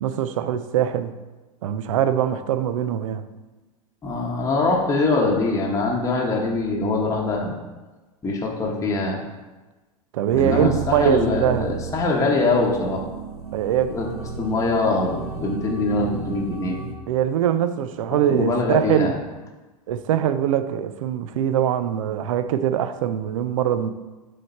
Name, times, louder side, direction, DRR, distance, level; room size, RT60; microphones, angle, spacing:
voice 1, 0.0-1.1 1.6-3.2 10.1-11.7 13.5-14.0 17.1-19.1 19.9-23.9, right 10 dB, 60° right, 12 dB, 0.5 m, -22 dB
voice 2, 4.0-7.5 8.2-9.2 10.3-13.0 13.9-14.1 14.4-16.8 18.3-19.2, left 3 dB, 15° left, -1 dB, 1.1 m, -23 dB
sound 1, 10.3-17.0, right 6 dB, 85° right, 0.8 m, -33 dB
7.6 x 3.3 x 4.2 m, 1.2 s
figure-of-eight pair, 90°, 19 cm